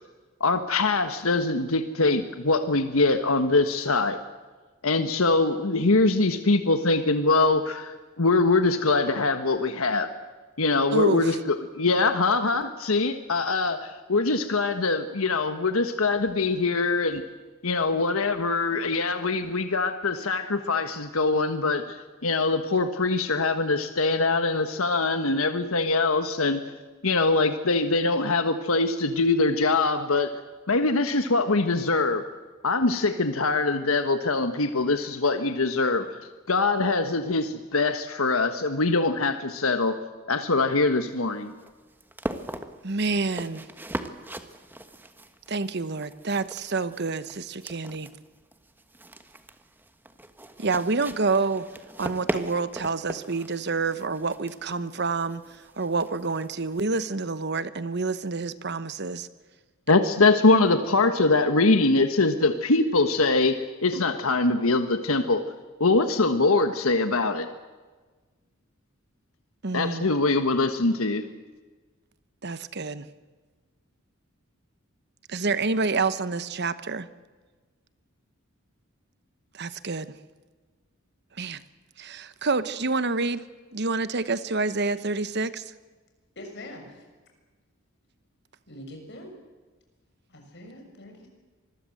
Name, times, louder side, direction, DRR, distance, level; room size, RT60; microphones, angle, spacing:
voice 1, 0.4-4.2 4.8-10.1 10.6-17.2 17.6-26.6 27.0-30.3 30.7-32.2 32.6-36.1 36.5-40.0 40.3-41.5 59.9-63.6 63.8-65.4 65.8-67.5 69.7-71.2, left 3 dB, 85° left, 8 dB, 1.4 m, -23 dB
voice 2, 10.9-11.4 42.8-43.7 45.5-48.1 50.6-51.7 52.0-59.3 69.6-70.1 72.4-73.1 75.3-77.1 79.5-80.1 81.4-81.6 82.0-83.4 83.7-85.7, right 3 dB, 55° right, 14 dB, 1.1 m, -28 dB
sound 1, 40.7-57.0, right 1 dB, 10° right, 1.4 m, -40 dB
voice 3, 86.3-87.0 88.7-89.3 90.3-91.3, left 1 dB, 55° left, 3 dB, 6.5 m, -43 dB
26.0 x 21.0 x 7.8 m, 1.3 s
head